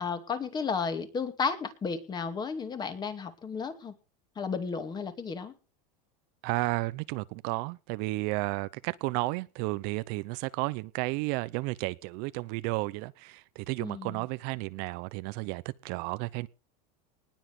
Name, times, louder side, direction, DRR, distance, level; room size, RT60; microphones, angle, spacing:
voice 1, 0.0-3.9 4.4-5.5 13.8-14.2, left 5 dB, 20° left, 2.4 m, -33 dB
voice 2, 6.4-16.5, right 23 dB, 55° right, 0.7 m, -32 dB
19.5 x 7.5 x 6.0 m
supercardioid pair, 150°, 20 cm